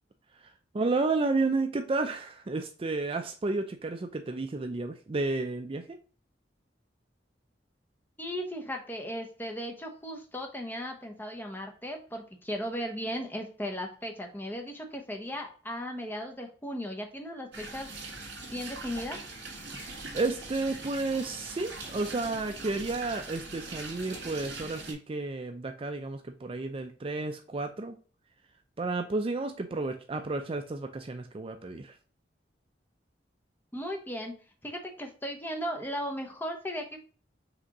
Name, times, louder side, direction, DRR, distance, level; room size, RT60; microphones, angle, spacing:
voice 1, 0.7-6.0 20.1-28.0 28.8-32.0, right 3 dB, 30° right, 6 dB, 0.4 m, -31 dB
voice 2, 8.2-17.9 18.5-19.2 33.7-34.3 34.6-37.0, equal, 10° left, 2 dB, 0.9 m, -36 dB
sound 1, 17.5-24.9, right 3 dB, 75° right, 2.0 m, -42 dB
5.0 x 3.4 x 2.9 m, 0.38 s
head